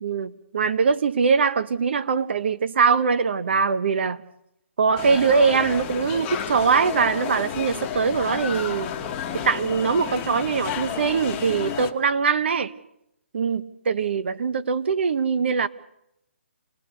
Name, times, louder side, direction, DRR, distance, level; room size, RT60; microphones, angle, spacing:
voice 1, 0.0-4.2 4.8-8.9 9.3-12.7 13.3-15.7, right 5 dB, 55° right, 1.3 m, -22 dB
sound 1, 5.0-11.9, left 8 dB, 20° left, 1.3 m, -32 dB
28.0 x 19.0 x 6.9 m
hypercardioid pair, 160°, 7 cm